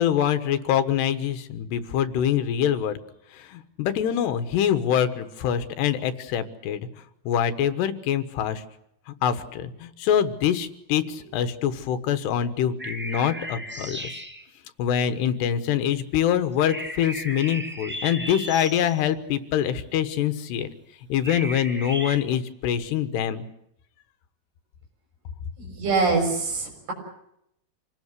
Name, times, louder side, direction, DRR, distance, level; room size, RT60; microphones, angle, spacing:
voice 1, 0.0-3.0 3.5-6.8 7.3-8.6 9.2-14.1 14.8-20.7 21.1-23.4, left 9 dB, 80° left, 10 dB, 3.4 m, -24 dB
sound 1, 12.8-14.5 16.6-19.0 21.2-22.2, equal, 5° right, 0.8 m, -35 dB
voice 2, 25.6-26.9, right 4 dB, 65° right, 3 dB, 8.3 m, -24 dB
27.0 x 18.5 x 8.2 m, 0.77 s
omnidirectional pair, 4.8 m